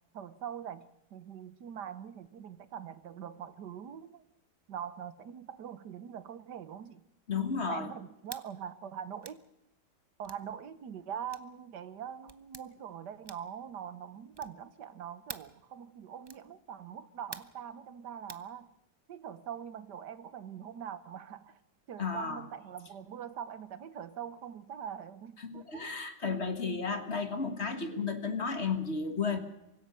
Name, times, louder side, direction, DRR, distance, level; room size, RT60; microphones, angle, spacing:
voice 1, 0.1-4.2 4.7-7.0 7.6-9.4 10.2-18.7 19.1-21.6 21.9-25.9, right 8 dB, 80° right, 1.6 m, -43 dB
voice 2, 7.3-7.9 22.0-22.4 25.4-29.4, left 5 dB, 40° left, 1.8 m, -33 dB
sound 1, 8.2-8.5 9.2-9.4 10.2-10.4 11.3-11.5 12.3-12.7 13.2-13.6 14.3-14.6 15.3-15.6 16.2-16.5 17.3-17.6 18.3-18.5, right 3 dB, 40° right, 0.3 m, -46 dB
24.5 x 16.0 x 6.9 m
omnidirectional pair, 1.8 m